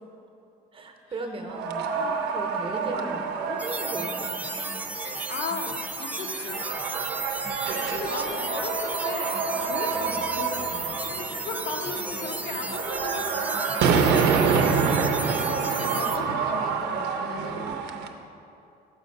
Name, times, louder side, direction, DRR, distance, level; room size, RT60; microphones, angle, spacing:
voice 1, 0.7-4.7 8.2-8.4 10.0-10.2 11.9-12.2 16.6-17.8, right 2 dB, 30° right, 3 dB, 0.8 m, -38 dB
sound 1, 1.5-18.1, right 5 dB, 85° right, 0.5 m, -28 dB
sound 2, 3.6-16.2, right 2 dB, 10° right, 0.3 m, -34 dB
voice 2, 5.1-6.7 7.9-14.0 14.4-17.7, left 4 dB, 70° left, 2 dB, 0.8 m, -37 dB
7.0 x 4.9 x 5.4 m, 2.7 s
cardioid pair, 110°, 17 cm